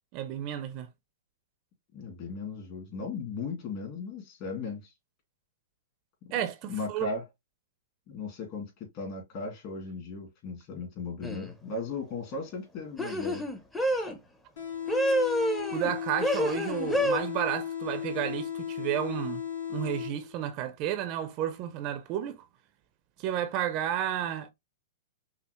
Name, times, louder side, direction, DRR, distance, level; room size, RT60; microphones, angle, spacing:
voice 1, 0.1-0.9 6.3-7.1 15.7-19.4 19.7-22.4 23.2-24.5, right 10 dB, 40° right, 0.6 m, -32 dB
voice 2, 1.9-4.8 6.7-7.2 8.1-13.5, left 4 dB, 45° left, 2.2 m, -37 dB
sound 1, 11.2-11.5 13.0-14.2 14.9-15.9 16.2-17.2, equal, 5° left, 0.7 m, -28 dB
sound 2, 14.6-20.5, left 9 dB, 75° left, 2.6 m, -36 dB
5.6 x 2.0 x 2.9 m
hypercardioid pair, 135°, 0 cm